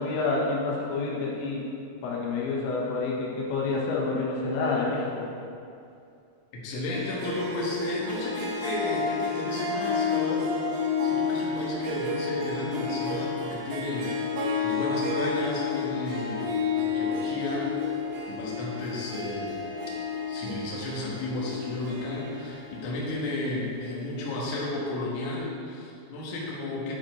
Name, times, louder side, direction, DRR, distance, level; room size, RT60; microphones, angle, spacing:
voice 1, 0.0-1.6 2.0-5.2, left 3 dB, 85° left, -4 dB, 3.4 m, -28 dB
voice 2, 6.5-14.1 14.6-18.0 18.3-19.6 20.3-27.0, left 2 dB, 60° left, -5 dB, 2.1 m, -33 dB
Harp, 6.9-23.7, left 5 dB, 80° right, 2.0 m, -31 dB
9.7 x 5.2 x 4.4 m, 2.5 s
omnidirectional pair, 5.2 m